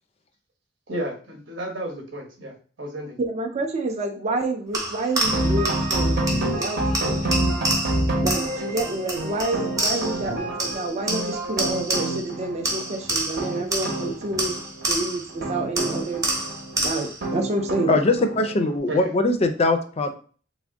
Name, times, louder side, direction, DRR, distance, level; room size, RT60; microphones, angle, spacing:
voice 1, 0.9-3.2 18.9-19.1, right 1 dB, 80° right, 1 dB, 1.0 m, -33 dB
voice 2, 3.2-6.2 6.6-7.2 8.2-14.6 14.9-16.2 16.8-17.9, right 2 dB, 35° right, 3 dB, 0.4 m, -28 dB
sound 1, 4.7-10.3 10.6-12.3 12.6-15.3 15.8-17.2, right 1 dB, 15° right, 0.9 m, -28 dB
sound 2, 5.2-18.8, right 1 dB, 55° right, 0.9 m, -28 dB
voice 3, 17.9-20.1, left 2 dB, 35° left, 7 dB, 0.4 m, -21 dB
3.5 x 2.1 x 3.5 m, 0.41 s
head